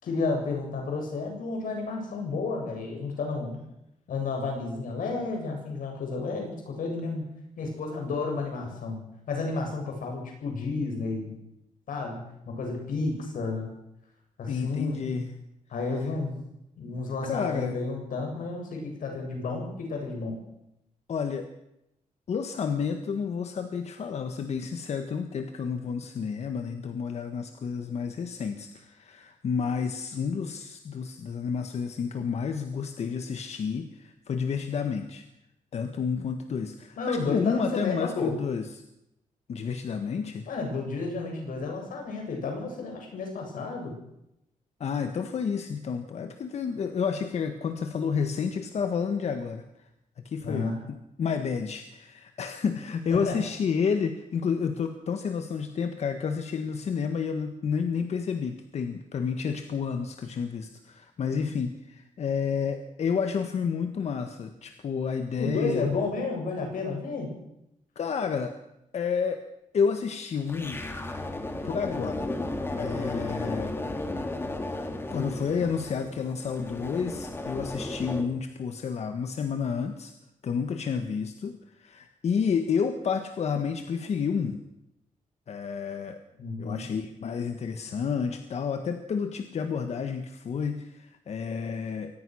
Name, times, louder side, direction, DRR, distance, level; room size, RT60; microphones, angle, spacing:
voice 1, 0.0-3.6 4.1-7.2 7.6-11.4 11.9-13.7 14.4-15.3 15.7-16.4 16.8-20.4 37.0-38.3 40.5-44.0 50.4-50.8 53.1-53.4 65.4-67.3 86.4-86.8, left 3 dB, 85° left, 2 dB, 7.6 m, -31 dB
voice 2, 14.5-15.2 17.2-17.8 21.1-21.5 22.3-35.2 35.7-38.8 39.5-40.5 44.8-49.6 50.2-65.9 67.9-68.5 68.9-69.4 69.7-70.8 71.6-72.3 72.8-73.7 75.1-80.1 80.4-84.6 85.5-86.2 86.6-92.2, left 6 dB, 55° left, 7 dB, 1.6 m, -30 dB
sound 1, 70.5-78.2, left 2 dB, 15° left, 2.3 m, -34 dB
24.5 x 19.0 x 6.4 m, 0.84 s
wide cardioid pair, 175°, 14 cm